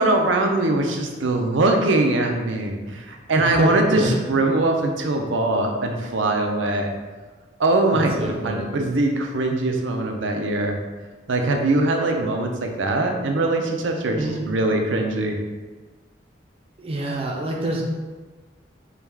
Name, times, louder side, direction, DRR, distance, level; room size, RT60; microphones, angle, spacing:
voice 1, 0.0-6.9 7.6-10.8 11.3-15.4, right 2 dB, 85° right, 3 dB, 0.5 m, -22 dB
voice 2, 3.6-4.2 7.9-8.6 14.2-14.4 16.8-17.8, right 1 dB, 30° right, -1 dB, 0.5 m, -26 dB
4.6 x 2.3 x 3.4 m, 1.3 s
head